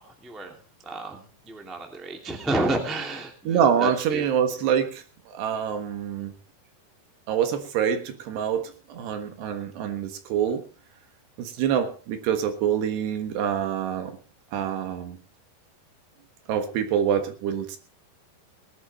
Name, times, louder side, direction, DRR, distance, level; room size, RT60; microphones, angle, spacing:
voice 1, 0.2-0.6 0.8-4.3, right 2 dB, ahead, 3 dB, 1.2 m, -30 dB
voice 2, 3.5-6.3 7.3-10.6 11.4-14.2 14.5-15.2 16.5-17.8, right 8 dB, 70° right, 7 dB, 3.4 m, -26 dB
19.5 x 11.0 x 4.3 m, 0.37 s
omnidirectional pair, 5.2 m